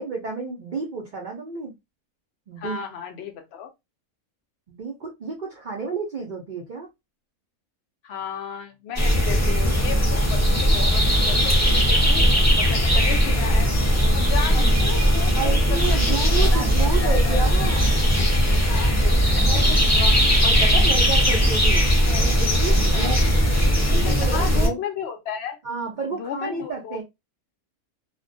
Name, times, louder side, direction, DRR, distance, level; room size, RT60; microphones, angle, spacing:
voice 1, 0.0-1.7 2.5-2.8 4.7-6.9 14.5-14.7 15.3-17.8 19.5-21.8 22.1-23.4 23.9-24.8 25.6-27.0, right 4 dB, 80° right, 0.4 m, -31 dB
voice 2, 2.6-3.7 8.0-13.7 14.1-17.5 18.7-19.5 20.7-20.8 22.1-22.5 22.9-23.2 24.0-25.6 26.2-27.0, left 7 dB, 65° left, 0.6 m, -34 dB
sound 1, 9.0-24.7, equal, 20° left, 0.4 m, -19 dB
2.3 x 2.1 x 2.5 m
omnidirectional pair, 1.5 m